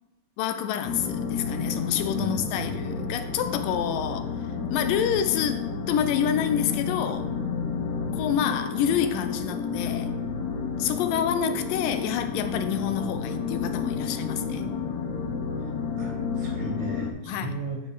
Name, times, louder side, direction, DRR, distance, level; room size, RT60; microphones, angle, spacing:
voice 1, 0.4-4.2 4.7-7.3 8.1-10.1 10.8-14.7 17.2-17.6, left 9 dB, 80° left, 8 dB, 2.3 m, -28 dB
sound 1, 0.8-17.1, left 5 dB, 65° left, 2.1 m, -31 dB
voice 2, 2.2-2.7 16.0-17.8, right 4 dB, 70° right, -5 dB, 5.0 m, -35 dB
9.9 x 4.6 x 4.8 m, 0.97 s
omnidirectional pair, 4.0 m